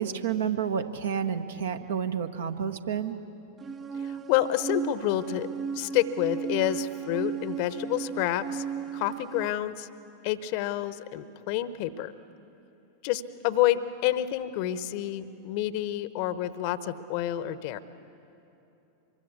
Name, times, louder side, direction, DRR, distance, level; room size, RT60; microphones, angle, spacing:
voice 1, 0.0-3.2, right 8 dB, 60° right, 8 dB, 1.1 m, -30 dB
sound 1, 3.6-9.5, right 7 dB, 20° right, 0.6 m, -35 dB
voice 2, 3.9-5.5 5.7-8.6 8.9-9.9 10.2-12.1 13.0-17.8, left 13 dB, 45° left, 15 dB, 0.9 m, -28 dB
25.0 x 22.5 x 8.4 m, 2.9 s
figure-of-eight pair, 90°, 0 cm